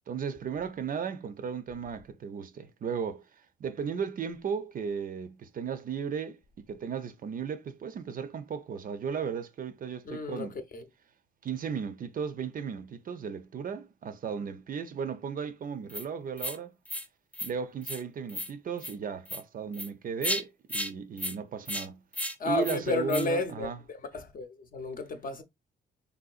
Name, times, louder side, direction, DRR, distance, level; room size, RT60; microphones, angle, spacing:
voice 1, 0.1-3.3 3.6-6.4 6.7-10.6 11.4-16.7 17.4-22.0 22.4-23.8, right 6 dB, 45° right, 0.5 m, -35 dB
voice 2, 10.0-10.8 22.4-25.4, left 3 dB, 45° left, 0.7 m, -32 dB
sound 1, 15.9-16.0 16.4-16.6 16.9-17.1 17.3-17.5 17.8-18.0 18.3-18.5 18.8-18.9 19.3-19.4 19.7-19.9 20.2-20.4 20.7-20.9 21.2-21.3 21.7-21.9 22.1-22.3 22.6-22.8 23.1-23.3, equal, 5° left, 0.5 m, -34 dB
3.4 x 2.6 x 2.4 m
cardioid pair, 90°, 20 cm